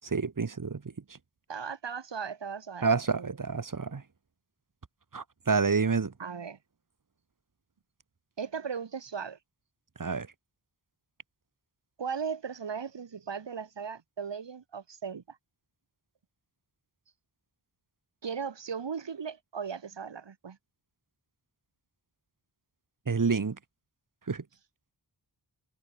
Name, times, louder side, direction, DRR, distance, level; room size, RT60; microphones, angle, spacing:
voice 1, 0.0-0.8 2.8-4.0 5.1-6.1 10.0-10.3 23.1-23.6 24.3-24.4, right 4 dB, 45° right, 2.3 m, -28 dB
voice 2, 1.5-3.3 6.2-6.6 8.4-9.4 12.0-15.4 18.2-20.6, right 6 dB, 75° right, 3.1 m, -37 dB
wide cardioid pair, 105°, 43 cm